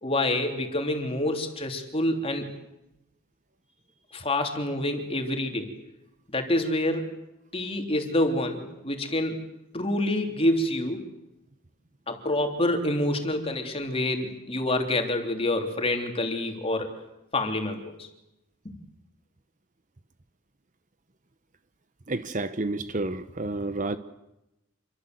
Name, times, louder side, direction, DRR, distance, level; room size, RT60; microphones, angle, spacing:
voice 1, 0.0-2.5 4.1-5.7 6.3-7.1 7.5-9.4 9.7-11.0 12.1-17.0 17.3-18.1 18.7-18.8, left 1 dB, 25° left, 4 dB, 3.4 m, -27 dB
voice 2, 22.1-24.0, right 2 dB, 35° right, 12 dB, 0.9 m, -30 dB
27.5 x 24.0 x 8.0 m, 0.90 s
head